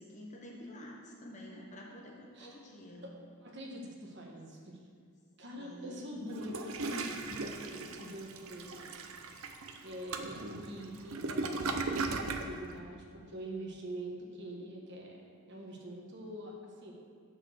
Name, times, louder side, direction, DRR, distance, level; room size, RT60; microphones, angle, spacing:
voice 1, 0.0-3.0 5.6-6.3, left 1 dB, 30° left, -1 dB, 1.0 m, -49 dB
voice 2, 3.0-4.8 5.4-6.6 6.8-9.4 9.8-15.2 15.5-16.9, equal, 50° right, -1 dB, 1.3 m, -45 dB
Toilet flush, 6.3-12.5, right 3 dB, 70° right, 0.7 m, -37 dB
7.7 x 6.1 x 6.4 m, 2.1 s
head